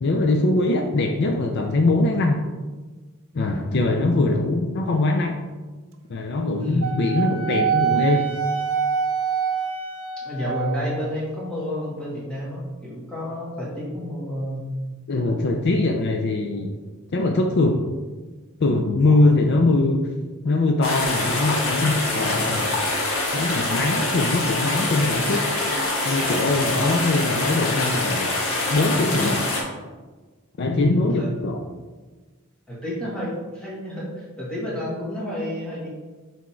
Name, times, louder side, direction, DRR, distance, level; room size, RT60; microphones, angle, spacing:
voice 1, 0.0-2.4 3.3-5.4 6.1-8.3 15.1-16.7 17.1-17.8 18.6-20.1 20.4-22.8 23.3-25.4 26.0-28.3 28.7-29.5 30.6-31.6, left 2 dB, 50° left, 3 dB, 0.4 m, -22 dB
voice 2, 4.0-4.3 6.6-6.9 10.2-14.7 19.0-19.2 30.7-31.3 32.7-35.9, equal, 5° left, -7 dB, 1.7 m, -30 dB
Wind instrument woodwind instrument, 6.8-11.0, right 7 dB, 70° right, 0.6 m, -25 dB
sound 1, 20.8-29.6, left 2 dB, 75° left, 1.4 m, -25 dB
6.2 x 3.5 x 4.3 m, 1.3 s
head